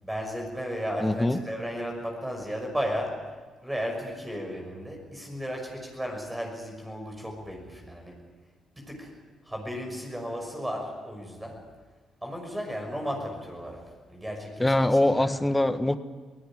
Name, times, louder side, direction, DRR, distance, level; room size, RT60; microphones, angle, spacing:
voice 1, 0.0-3.4 3.6-8.3 8.8-9.2 9.4-11.7 12.2-14.8 15.2-15.3, equal, 10° right, 1 dB, 6.0 m, -34 dB
voice 2, 1.0-1.4 14.6-16.0, left 1 dB, 10° left, 10 dB, 1.3 m, -23 dB
23.0 x 17.5 x 9.0 m, 1.4 s
cardioid pair, 90°, 0 cm